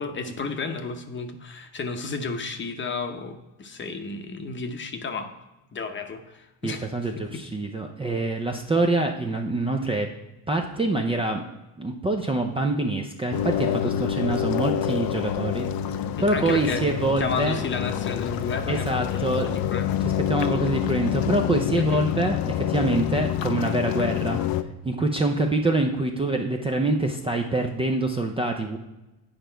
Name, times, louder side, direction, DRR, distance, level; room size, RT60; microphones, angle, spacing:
voice 1, 0.0-5.3 5.7-6.9 16.3-16.8 17.2-19.9 21.8-22.1, left 4 dB, 30° left, 6 dB, 0.8 m, -32 dB
voice 2, 6.6-10.1 10.5-11.4 11.8-15.7 15.9-17.6 18.7-19.5 20.0-24.4 24.8-28.8, right 2 dB, 15° right, 3 dB, 0.5 m, -25 dB
sound 1, 13.3-24.6, left 11 dB, 60° left, 0.6 m, -27 dB
8.8 x 5.1 x 4.5 m, 1.0 s
cardioid pair, 120°, 40 cm